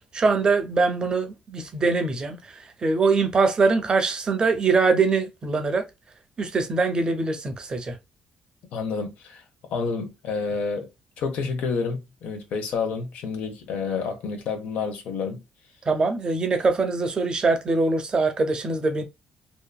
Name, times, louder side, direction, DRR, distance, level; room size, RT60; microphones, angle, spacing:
voice 1, 0.1-5.8 6.4-8.0 15.9-19.0, right 4 dB, 30° right, 0.7 m, -23 dB
voice 2, 8.7-10.9 11.2-15.4, left 5 dB, 80° left, 0.8 m, -29 dB
2.8 x 2.4 x 2.2 m
cardioid pair, 115°, 3 cm